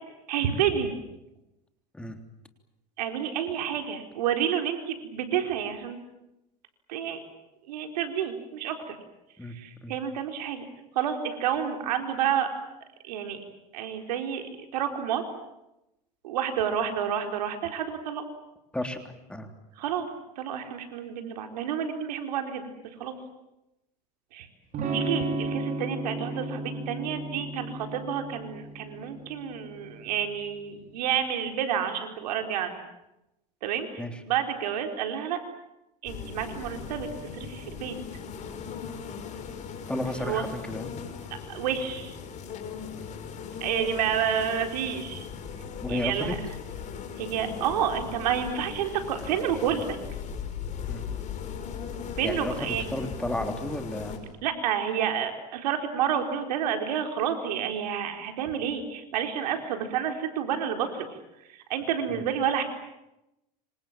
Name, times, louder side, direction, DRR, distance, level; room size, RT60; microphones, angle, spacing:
voice 1, 0.3-0.9 3.0-6.0 6.9-7.2 7.7-9.0 9.5-10.7 10.9-12.5 13.1-13.4 13.7-15.2 16.2-18.2 19.8-20.1 20.4-22.6 23.0-23.2 24.3-24.5 24.9-32.8 33.6-35.4 36.0-38.0 40.2-40.5 41.5-42.2 43.6-45.3 45.9-46.3 47.2-50.0 52.2-52.9 54.4-61.1 61.5-62.6, right 8 dB, 80° right, 5 dB, 4.4 m, -29 dB
voice 2, 18.7-19.5 34.0-34.2 39.9-40.9 42.9-43.1 45.8-46.3 50.9-51.1 52.2-54.2 62.1-62.2, left 1 dB, 5° left, 6 dB, 3.4 m, -33 dB
Electric guitar / Strum, 24.7-30.5, right 2 dB, 40° right, 5.9 m, -34 dB
sound 1, 36.0-54.2, left 7 dB, 35° left, 5.8 m, -38 dB
26.5 x 26.5 x 7.6 m, 0.89 s
supercardioid pair, 115°, 21 cm